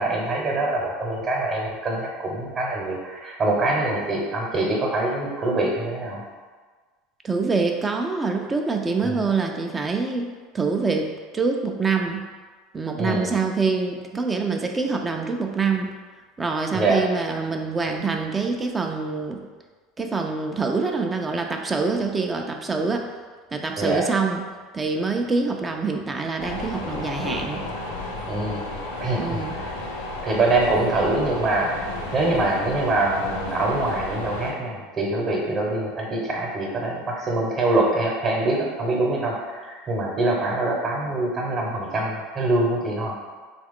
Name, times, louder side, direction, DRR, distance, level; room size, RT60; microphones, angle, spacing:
voice 1, 0.0-6.2 9.0-9.2 13.0-13.4 16.7-17.0 23.8-24.1 28.3-28.7 29.0-29.7 30.2-31.8 32.1-43.1, right 2 dB, 40° right, -2 dB, 0.8 m, -24 dB
voice 2, 7.2-12.2 12.7-15.9 16.4-19.4 20.0-23.1 23.5-24.4 24.7-27.6 29.2-29.6, right 4 dB, 20° right, 3 dB, 0.3 m, -25 dB
sound 1, 26.4-34.5, left 2 dB, 85° left, 0.5 m, -32 dB
3.0 x 2.3 x 3.5 m, 1.4 s
hypercardioid pair, 85°, 0 cm